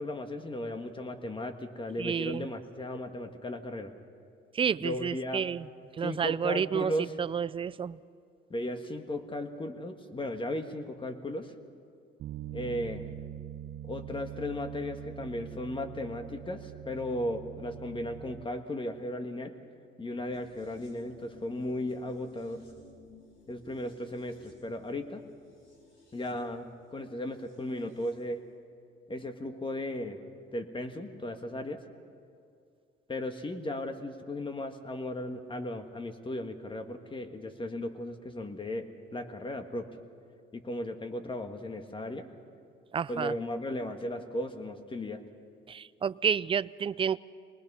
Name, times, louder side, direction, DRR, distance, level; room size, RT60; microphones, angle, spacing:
voice 1, 0.0-3.9 4.8-5.5 6.0-7.2 8.5-11.5 12.5-13.1 13.8-19.6 20.0-22.6 23.5-25.2 26.1-28.4 29.1-30.3 30.5-31.8 33.1-39.9 40.5-42.3 43.1-45.2, left 1 dB, 25° left, 7 dB, 1.6 m, -36 dB
voice 2, 2.0-2.5 4.5-5.7 6.0-6.9 7.2-8.0 42.9-43.3 45.7-47.2, right 7 dB, 25° right, 17 dB, 0.4 m, -30 dB
Bass guitar, 12.2-18.4, right 12 dB, 70° right, 0.8 m, -43 dB
sound 1, 20.3-28.2 28.5-28.6, left 3 dB, 75° left, 5.7 m, -58 dB
24.0 x 20.0 x 5.6 m, 2.4 s
cardioid pair, 90°, 20 cm